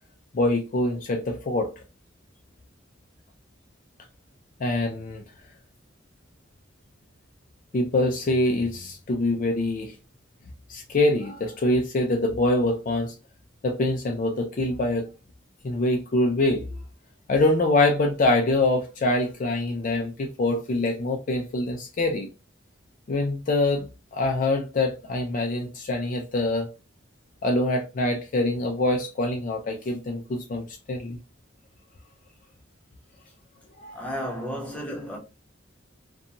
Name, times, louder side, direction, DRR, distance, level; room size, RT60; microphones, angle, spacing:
voice 1, 0.3-1.7 4.6-5.2 7.7-10.0 10.7-13.1 13.6-15.1 15.6-16.6 17.3-22.3 23.1-26.7 27.4-31.2 33.8-34.1, left 2 dB, 45° left, 0.4 m, -24 dB
voice 2, 33.9-35.2, equal, 5° left, 0.9 m, -33 dB
2.6 x 2.2 x 2.8 m
head